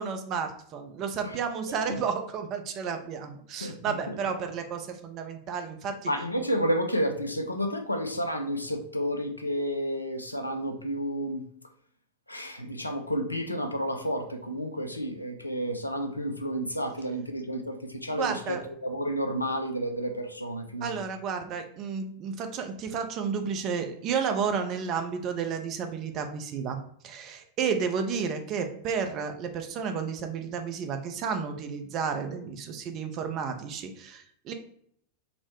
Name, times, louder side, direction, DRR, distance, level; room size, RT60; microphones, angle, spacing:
voice 1, 0.0-6.1 18.1-18.6 20.8-26.8 27.0-34.5, right 6 dB, 35° right, 0.5 m, -32 dB
voice 2, 3.6-4.2 6.1-11.4 12.3-21.0, equal, 85° left, 0.4 m, -31 dB
3.9 x 2.0 x 2.9 m
figure-of-eight pair, 90°, 0 cm